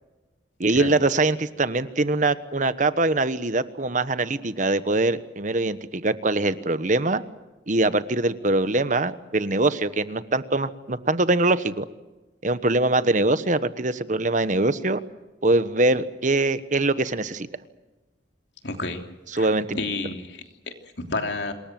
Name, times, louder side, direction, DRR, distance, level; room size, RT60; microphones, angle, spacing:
voice 1, 0.6-7.2 7.7-11.9 12.4-15.0 15.4-17.5 19.3-19.8, right 2 dB, 40° right, 13 dB, 1.1 m, -23 dB
voice 2, 18.6-19.0 19.3-21.5, left 3 dB, 65° left, 5 dB, 3.1 m, -31 dB
27.0 x 21.0 x 7.6 m, 1.1 s
head